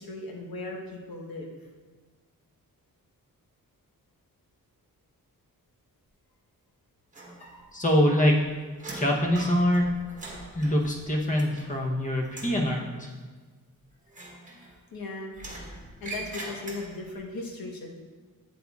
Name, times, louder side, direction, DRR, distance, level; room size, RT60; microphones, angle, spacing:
voice 1, 0.0-1.5 14.9-15.3 16.0-17.9, left 2 dB, 90° left, 0 dB, 1.2 m, -37 dB
sound 1, 7.1-7.9 8.2-11.9 12.2-12.6 14.1-15.0 15.3-17.1, right 2 dB, 20° right, 1.2 m, -42 dB
voice 2, 7.7-8.4 8.9-9.8 10.5-13.1, equal, 20° left, -1 dB, 0.9 m, -24 dB
8.4 x 8.0 x 2.4 m, 1.4 s
wide cardioid pair, 175°, 35 cm